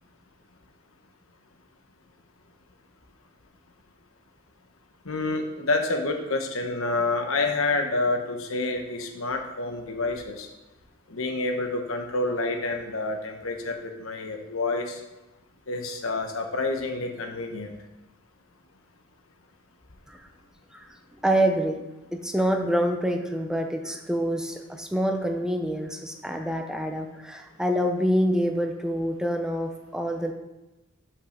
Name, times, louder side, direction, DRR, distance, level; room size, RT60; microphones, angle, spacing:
voice 1, 5.0-10.5 11.1-15.0 15.7-17.8, left 2 dB, 70° left, 4 dB, 1.1 m, -28 dB
voice 2, 21.2-21.8 22.1-30.3, equal, 5° right, 4 dB, 0.7 m, -26 dB
5.8 x 5.5 x 6.5 m, 1.0 s
head